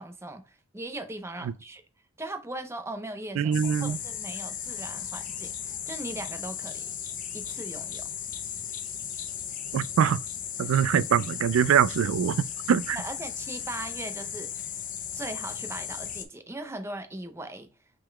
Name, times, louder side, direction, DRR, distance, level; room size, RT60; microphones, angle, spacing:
voice 1, 0.0-1.8 2.2-6.8 7.3-8.1 13.0-14.5 15.1-17.7, right 2 dB, 15° right, 0.6 m, -39 dB
voice 2, 3.4-4.0 9.7-10.2 10.6-13.0, right 8 dB, 85° right, 0.3 m, -23 dB
sound 1, 3.5-16.2, left 8 dB, 40° left, 0.6 m, -36 dB
5.8 x 3.9 x 2.2 m
head